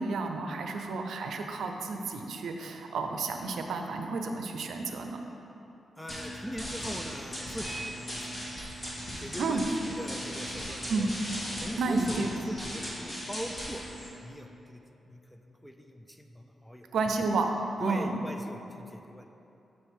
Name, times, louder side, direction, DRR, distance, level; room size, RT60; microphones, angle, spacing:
voice 1, 0.0-5.2 9.4-9.6 10.9-11.1 11.8-12.3 16.9-17.5 17.8-18.2, right 3 dB, 85° right, 4 dB, 0.5 m, -31 dB
voice 2, 6.0-8.3 9.2-11.1 11.6-13.8 14.2-16.9 17.8-19.3, equal, 5° left, 5 dB, 0.4 m, -41 dB
sound 1, 6.1-14.1, equal, 30° left, 1.6 m, -38 dB
7.1 x 6.5 x 3.6 m, 2.9 s
wide cardioid pair, 140°, 0 cm